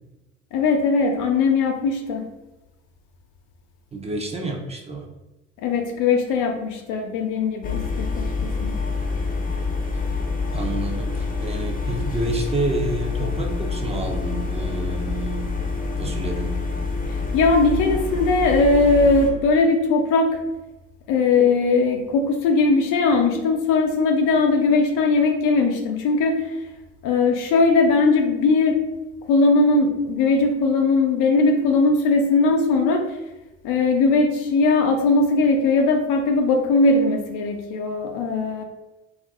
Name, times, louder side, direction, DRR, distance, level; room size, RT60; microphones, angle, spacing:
voice 1, 0.5-2.3 5.6-8.8 17.3-20.3 21.1-26.5 27.0-28.8 29.3-33.0 33.6-38.6, left 3 dB, 65° left, 4 dB, 0.6 m, -19 dB
voice 2, 3.9-5.1 10.5-15.6 16.0-16.6, right 2 dB, 20° right, 1 dB, 0.7 m, -29 dB
sound 1, 7.6-19.3, left 4 dB, 25° left, 0.7 m, -27 dB
2.6 x 2.4 x 3.5 m, 1.0 s
hypercardioid pair, 65°, 34 cm